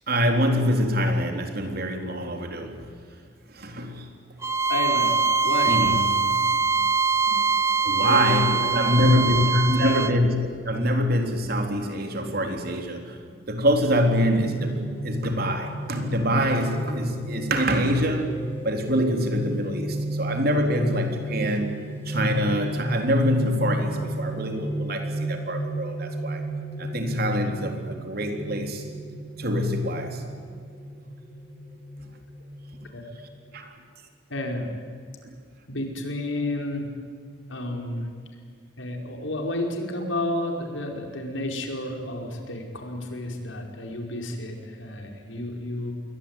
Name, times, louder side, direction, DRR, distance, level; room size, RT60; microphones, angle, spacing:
voice 1, 0.1-2.9 3.5-4.1 5.7-6.0 7.8-10.4 10.7-13.2 13.5-18.3 18.6-21.7 22.1-26.4 26.8-28.9 29.4-30.2 33.5-33.7, equal, 50° right, 4 dB, 3.8 m, -25 dB
Bowed string instrument, 4.4-10.2, right 5 dB, 15° right, 0.7 m, -23 dB
voice 2, 4.7-5.8 7.9-9.4 9.8-10.2 32.9-33.1 34.3-34.7 35.7-36.9 37.5-38.1 38.8-45.9, left 1 dB, 80° left, 3 dB, 5.1 m, -31 dB
sound 1, 14.4-33.5, right 1 dB, 10° left, 4.1 m, -33 dB
29.0 x 22.5 x 9.1 m, 2.1 s
head